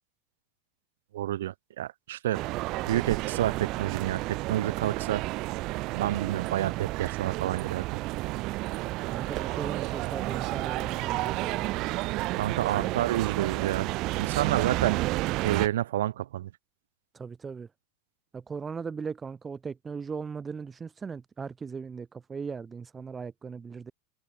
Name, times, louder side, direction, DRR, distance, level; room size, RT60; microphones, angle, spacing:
voice 1, 1.1-2.4 2.9-5.2 5.9-7.8 12.3-13.9 14.2-15.0 15.4-16.5, right 13 dB, 85° right, 1.4 m, -29 dB
sound 1, 2.3-15.7, right 20 dB, 50° right, 0.4 m, -31 dB
voice 2, 9.1-12.0 12.5-13.0 17.1-17.7 18.3-23.9, right 5 dB, 20° right, 2.6 m, -38 dB
supercardioid pair, 120°, 0 cm